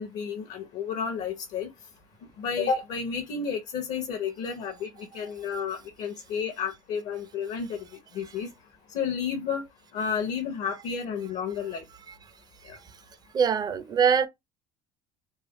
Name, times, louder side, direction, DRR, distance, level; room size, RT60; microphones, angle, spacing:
voice 1, 0.0-1.7 2.4-4.9 5.1-7.8 8.1-8.5 8.9-9.6 9.9-11.8, left 6 dB, 60° left, 0.7 m, -31 dB
voice 2, 13.3-14.3, right 7 dB, 30° right, 0.4 m, -22 dB
3.1 x 2.1 x 2.9 m
supercardioid pair, 110°, 14 cm